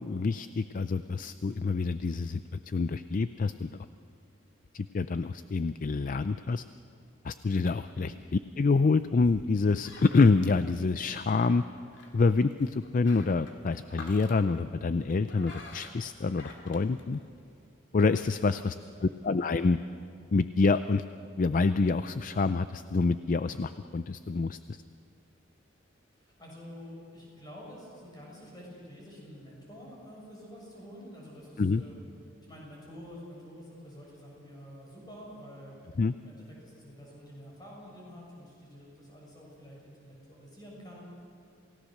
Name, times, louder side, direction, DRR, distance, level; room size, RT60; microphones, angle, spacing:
voice 1, 0.0-3.9 4.7-6.6 7.2-8.1 8.6-11.6 12.1-17.2 17.9-18.8 19.0-19.8 20.3-21.0 21.4-24.8 31.6-31.8 36.0-36.1, left 4 dB, 45° left, 12 dB, 0.4 m, -27 dB
sound 1, 7.4-17.7, left 2 dB, 65° left, 2.7 m, -51 dB
voice 2, 18.8-19.2 26.2-32.0 32.5-35.9 36.2-41.0, equal, 20° left, -3 dB, 7.4 m, -48 dB
28.0 x 17.5 x 6.6 m, 2.5 s
head